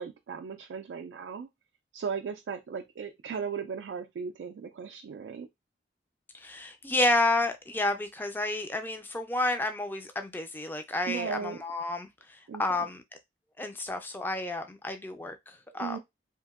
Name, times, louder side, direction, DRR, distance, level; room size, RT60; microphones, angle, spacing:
voice 1, 0.0-1.5 1.9-5.5 11.1-11.6 12.5-12.6 15.8-16.0, right 6 dB, 90° right, 0.3 m, -36 dB
voice 2, 6.3-13.0 13.6-16.0, left 2 dB, 10° left, 0.3 m, -30 dB
2.8 x 2.5 x 2.3 m
head